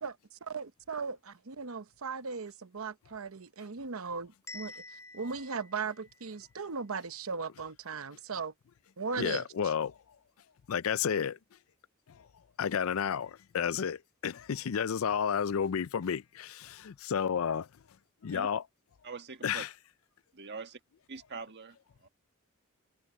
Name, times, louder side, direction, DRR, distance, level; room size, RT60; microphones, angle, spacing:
voice 1, 0.0-8.5 9.0-9.5, right 5 dB, 75° right, 0.9 m, -38 dB
Bell, 4.5-6.5, left 2 dB, 15° left, 3.2 m, -49 dB
voice 2, 9.2-10.0 10.7-11.4 12.1-12.3 12.6-17.7 18.2-18.6 19.4-19.7, left 7 dB, 70° left, 0.4 m, -31 dB
voice 3, 19.0-19.6 20.3-20.8 21.1-21.8 22.0-22.1, right 4 dB, 55° right, 1.6 m, -43 dB
head